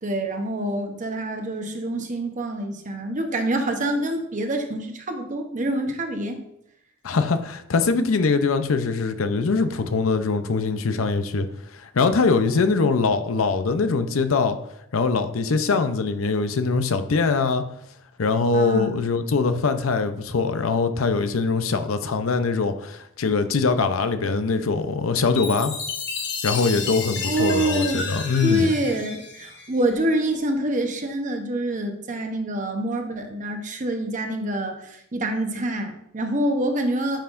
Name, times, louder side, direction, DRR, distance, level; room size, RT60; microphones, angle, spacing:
voice 1, 0.0-6.4 12.7-12.9 18.5-19.0 27.2-28.1 28.4-37.2, right 1 dB, 40° right, 4 dB, 0.9 m, -26 dB
voice 2, 7.0-11.5 11.8-14.6 14.9-17.6 18.2-25.7 26.4-28.7, left 4 dB, 85° left, 9 dB, 0.6 m, -22 dB
Chime, 25.4-30.0, left 5 dB, 60° left, 1.1 m, -32 dB
10.0 x 5.6 x 2.5 m, 0.78 s
head